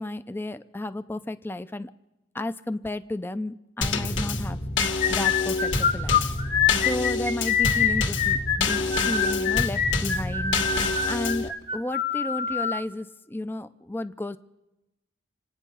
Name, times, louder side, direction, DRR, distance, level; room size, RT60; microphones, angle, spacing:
voice 1, 0.0-1.9 2.3-4.6 5.1-6.2 6.8-10.6 11.1-14.4, left 1 dB, 10° left, 11 dB, 0.4 m, -32 dB
Drum kit / Snare drum / Bass drum, 3.8-11.5, left 3 dB, 65° left, 1.6 m, -28 dB
sound 1, 4.8-12.8, left 7 dB, 45° left, 1.5 m, -25 dB
27.5 x 9.2 x 5.6 m, 0.97 s
head